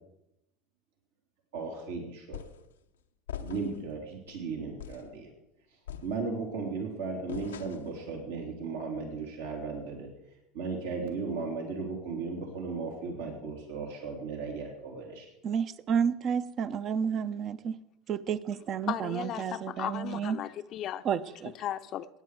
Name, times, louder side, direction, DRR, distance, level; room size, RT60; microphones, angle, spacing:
voice 1, 1.5-2.4 3.4-5.3 6.0-10.1 10.5-15.3, right 4 dB, 75° right, 1 dB, 2.9 m, -36 dB
sound 1, 2.3-2.7 3.3-3.9 4.3-4.4 4.8-5.2 5.9-6.6 7.3-8.0, left 9 dB, 85° left, 0.7 m, -42 dB
voice 2, 15.4-17.8 18.1-20.4 21.0-21.5, right 7 dB, 45° right, 14 dB, 0.7 m, -31 dB
voice 3, 18.9-21.1 21.6-22.2, left 11 dB, 50° left, 11 dB, 0.6 m, -36 dB
16.5 x 9.5 x 4.8 m, 0.88 s
hypercardioid pair, 80°, 0 cm